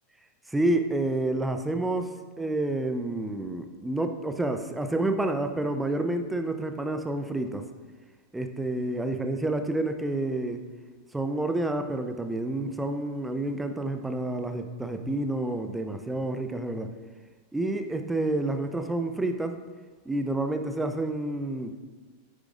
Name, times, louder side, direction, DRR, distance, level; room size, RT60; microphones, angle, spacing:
voice 1, 0.5-7.7 8.3-10.7 11.1-16.9 17.5-19.6 20.1-21.8, right 2 dB, 5° right, 7 dB, 0.7 m, -29 dB
10.0 x 9.7 x 2.5 m, 1.4 s
figure-of-eight pair, 90°, 0 cm